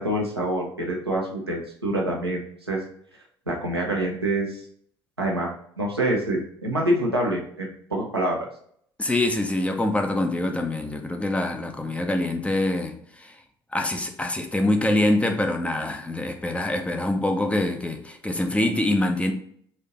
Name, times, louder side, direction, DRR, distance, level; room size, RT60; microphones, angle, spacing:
voice 1, 0.0-2.8 3.5-4.6 5.2-5.5 5.8-8.4, right 1 dB, 85° right, 0.8 m, -26 dB
voice 2, 9.0-13.3 13.7-19.3, left 1 dB, 10° left, 0.6 m, -25 dB
4.2 x 2.7 x 4.1 m
figure-of-eight pair, 55°, 13 cm